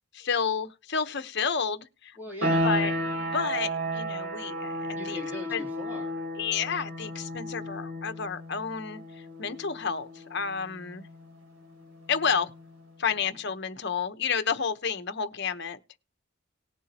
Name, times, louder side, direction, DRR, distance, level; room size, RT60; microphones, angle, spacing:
voice 1, 0.1-2.2 2.6-2.9 3.3-5.2 5.5-5.7 6.4-11.1 12.1-12.5 13.0-15.8, left 6 dB, 55° left, 1.0 m, -30 dB
voice 2, 2.2-2.7 4.9-6.2, left 2 dB, 10° right, 2.9 m, -40 dB
sound 1, 2.4-12.9, equal, 70° right, 3.5 m, -33 dB
19.0 x 7.3 x 2.9 m
head